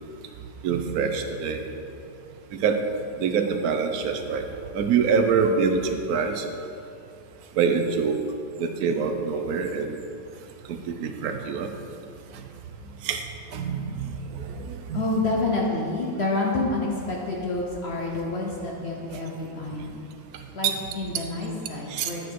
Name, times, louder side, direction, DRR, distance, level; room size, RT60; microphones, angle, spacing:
voice 1, 0.6-1.6 2.5-2.8 3.2-4.4 4.7-6.5 7.6-8.2 8.6-10.0 10.7-11.7 12.3-12.4 13.0-13.2 13.5-15.0 20.3-20.9 21.9-22.1, right 6 dB, 65° right, 6 dB, 1.0 m, -25 dB
voice 2, 14.9-19.9 20.5-22.3, left 2 dB, 50° left, -2 dB, 0.8 m, -28 dB
10.5 x 6.1 x 4.6 m, 2.6 s
omnidirectional pair, 2.1 m